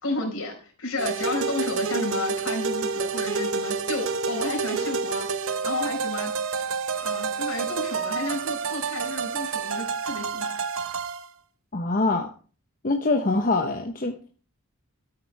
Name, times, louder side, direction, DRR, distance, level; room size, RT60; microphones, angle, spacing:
voice 1, 0.0-5.3 5.6-6.3 7.0-10.5, left 2 dB, 65° left, 4.6 m, -31 dB
sound 1, 1.0-11.3, right 5 dB, 60° right, 0.9 m, -29 dB
voice 2, 11.7-12.3 12.8-14.3, left 3 dB, 40° left, 0.9 m, -24 dB
13.5 x 8.8 x 3.4 m
head